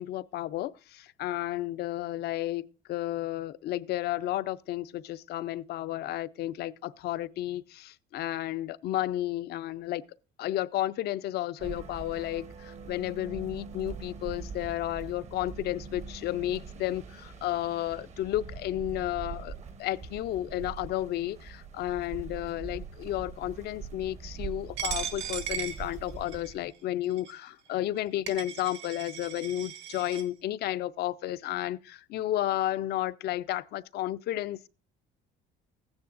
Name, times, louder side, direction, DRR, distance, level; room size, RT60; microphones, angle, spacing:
voice 1, 0.0-10.0 10.4-34.7, left 14 dB, 55° left, 0.4 m, -32 dB
sound 1, 11.6-26.7, right 5 dB, 35° right, 0.7 m, -43 dB
Coin (dropping), 24.8-26.5 27.2-27.3 28.0-28.1 28.3-30.2, right 8 dB, 65° right, 1.3 m, -37 dB
14.5 x 9.6 x 2.5 m
cardioid pair, 125°, 20 cm